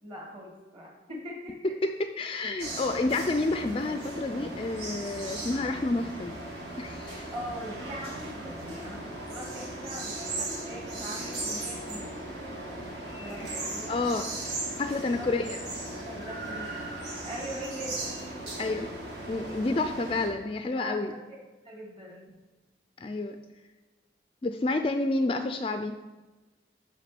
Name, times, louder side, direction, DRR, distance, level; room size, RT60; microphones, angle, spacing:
voice 1, 0.0-1.6 7.3-12.2 13.2-14.3 14.8-15.3 15.9-16.8 17.2-18.9 20.7-21.4 21.6-22.3, equal, 30° right, -2 dB, 2.0 m, -42 dB
voice 2, 1.8-6.4 6.8-7.3 13.9-14.3 14.8-15.6 18.6-18.9 19.3-21.1 23.0-23.4 24.4-25.9, left 2 dB, 30° left, 7 dB, 0.3 m, -29 dB
sound 1, 2.6-20.3, right 2 dB, 60° right, 2.1 m, -37 dB
6.1 x 5.7 x 5.9 m, 1.2 s
head